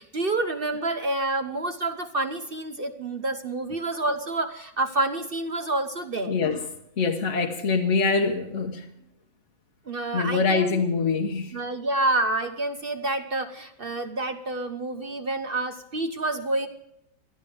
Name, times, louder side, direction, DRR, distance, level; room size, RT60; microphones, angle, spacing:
voice 1, 0.0-6.3 9.9-10.8 11.5-16.7, right 2 dB, 40° right, 7 dB, 0.8 m, -28 dB
voice 2, 6.3-6.6 7.0-8.9 10.1-11.5, left 4 dB, 45° left, 1 dB, 1.3 m, -24 dB
22.0 x 13.5 x 3.5 m, 0.78 s
omnidirectional pair, 2.1 m